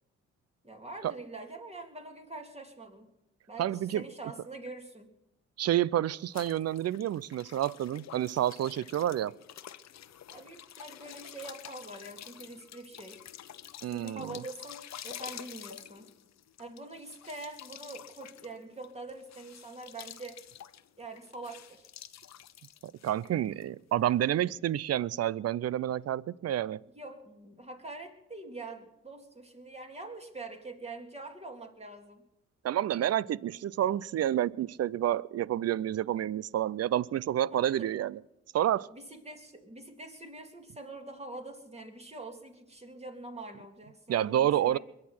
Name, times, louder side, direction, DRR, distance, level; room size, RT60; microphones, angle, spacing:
voice 1, 0.6-3.1 3.5-3.7 3.9-5.1 10.3-13.2 13.9-16.1 16.6-20.4 21.0-21.9 26.9-32.2 37.5-37.9 38.9-44.8, right 2 dB, 20° right, 3.4 m, -44 dB
voice 2, 3.6-4.0 5.6-9.3 13.8-14.4 22.8-26.8 32.6-38.2 38.5-38.9 44.1-44.8, right 11 dB, 50° right, 0.6 m, -29 dB
sound 1, 6.3-23.7, left 10 dB, 60° left, 0.9 m, -49 dB
22.5 x 9.8 x 6.1 m
supercardioid pair, 55°, 31 cm